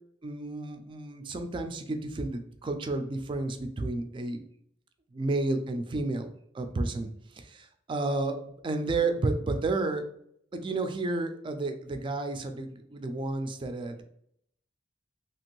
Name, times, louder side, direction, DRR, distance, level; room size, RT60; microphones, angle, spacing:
voice 1, 0.2-4.4 5.1-7.1 7.4-10.0 10.5-14.0, right 2 dB, 25° right, 7 dB, 0.3 m, -31 dB
2.9 x 2.5 x 3.0 m, 0.70 s
head